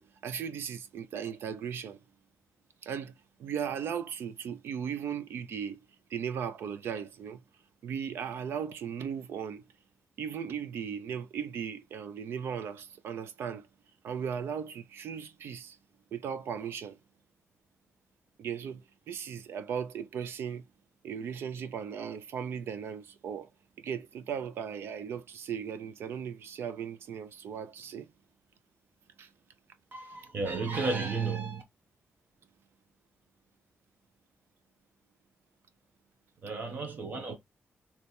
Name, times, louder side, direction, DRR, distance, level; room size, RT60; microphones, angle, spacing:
voice 1, 0.0-2.0 2.8-3.1 3.4-5.8 6.1-7.4 7.8-9.6 10.2-13.7 14.0-15.8 16.1-17.0 18.4-20.6 21.0-23.5 23.8-28.1 29.2-29.3, right 7 dB, 85° right, 0.6 m, -37 dB
voice 2, 29.9-31.6 36.4-37.3, right 4 dB, 55° right, 1.1 m, -33 dB
3.3 x 2.9 x 4.3 m
wide cardioid pair, 145°, 4 cm